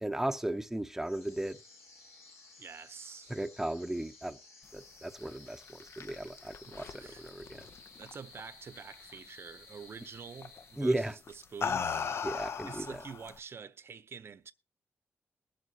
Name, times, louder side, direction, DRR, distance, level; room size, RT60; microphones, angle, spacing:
voice 1, 0.0-1.6 3.3-4.4 4.7-7.7 10.8-11.1 12.2-13.0, right 1 dB, 10° right, 0.7 m, -35 dB
sound 1, 1.0-11.2, left 3 dB, 80° left, 3.0 m, -56 dB
voice 2, 2.6-3.3 6.7-7.3 8.0-12.1 12.6-14.5, right 6 dB, 55° right, 0.6 m, -47 dB
sound 2, 5.5-8.4 8.8-9.2 10.4-10.6 11.3-13.4, left 6 dB, 60° left, 0.6 m, -37 dB
21.0 x 7.7 x 2.7 m
cardioid pair, 80°, 5 cm